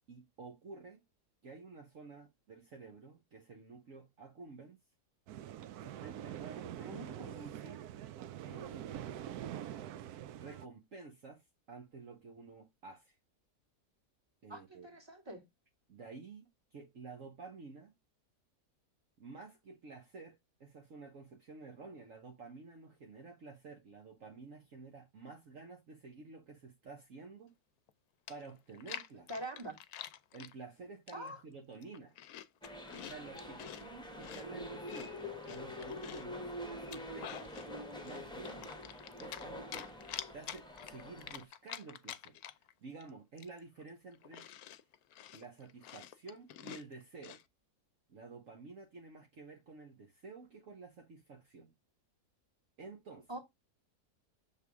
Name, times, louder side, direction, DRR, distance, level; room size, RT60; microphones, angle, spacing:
voice 1, 0.1-1.0 1.4-4.8 5.8-7.9 8.5-9.1 10.4-13.1 14.4-14.9 15.9-17.9 19.2-27.5 28.3-29.3 30.3-32.1 33.1-35.2 35.4-37.4 38.0-38.6 39.2-42.4 42.8-44.5 45.3-47.4 48.1-51.7 52.8-53.3, right 4 dB, 55° right, 1.4 m, -51 dB
sound 1, 5.3-10.7, right 11 dB, 75° right, 1.1 m, -44 dB
voice 2, 6.8-7.4 14.5-15.4 29.3-29.8 31.1-31.4 53.3-53.4, right 1 dB, 15° right, 2.0 m, -44 dB
Chewing mastication, 27.9-28.0 28.3-30.5 31.1-31.4 31.8-33.8 34.2-36.3 36.8-37.7 38.1-39.5 39.7-42.7 43.0-43.1 43.4-47.4, left 11 dB, 70° left, 1.0 m, -48 dB
sound 2, 32.6-41.4, left 1 dB, 5° left, 1.2 m, -46 dB
6.9 x 3.4 x 4.7 m
omnidirectional pair, 1.7 m